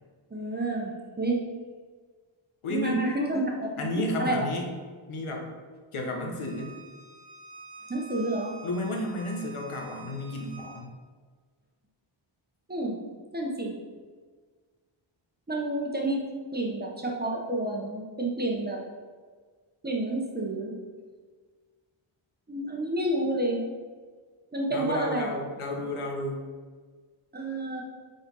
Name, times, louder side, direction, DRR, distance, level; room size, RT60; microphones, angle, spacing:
voice 1, 0.3-1.4 2.7-4.4 7.9-8.5 12.7-13.0 13.3-13.8 15.5-16.2 16.5-18.8 19.8-20.8 22.5-23.6 24.5-25.4 27.3-27.8, right 1 dB, 20° right, -1 dB, 0.8 m, -29 dB
voice 2, 2.6-3.1 3.8-4.7 5.1-5.5 5.9-6.8 8.6-10.9 24.7-26.4, left 1 dB, 80° left, 1 dB, 1.2 m, -32 dB
Bowed string instrument, 6.4-10.8, right 4 dB, 55° right, 0.8 m, -47 dB
5.4 x 4.0 x 5.4 m, 1.5 s
wide cardioid pair, 160°, 49 cm